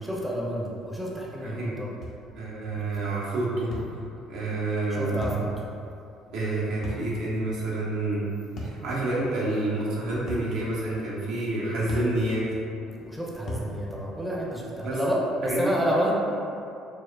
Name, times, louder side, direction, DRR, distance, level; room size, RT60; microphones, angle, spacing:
voice 1, 0.0-2.0 4.9-5.5 13.0-16.1, equal, 5° right, -4 dB, 0.7 m, -29 dB
voice 2, 1.4-1.7 2.3-3.7 4.3-5.3 6.3-8.3 8.6-12.5 14.8-15.0 15.4-15.7, right 2 dB, 65° right, -6 dB, 0.8 m, -28 dB
sound 1, 2.0-2.2 3.7-3.9 5.2-5.5 6.8-7.1 8.6-8.8 10.3-10.5 11.9-12.1 13.5-13.7, left 1 dB, 50° left, 0.7 m, -34 dB
4.8 x 2.1 x 2.3 m, 2.6 s
hypercardioid pair, 55°, 0 cm